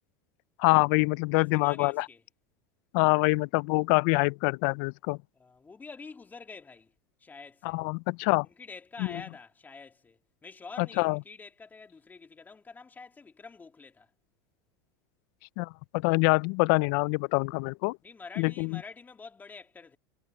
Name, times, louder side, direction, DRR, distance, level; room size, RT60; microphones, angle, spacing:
voice 1, 0.6-2.1 2.9-5.2 7.6-8.5 11.0-11.2 15.6-18.0 18.4-18.8, left 27 dB, 60° left, 0.5 m, -25 dB
voice 2, 1.3-2.2 5.3-6.9 7.2-7.8 8.4-14.1 18.0-20.0, left 4 dB, 15° left, 3.3 m, -47 dB
supercardioid pair, 125°, 11 cm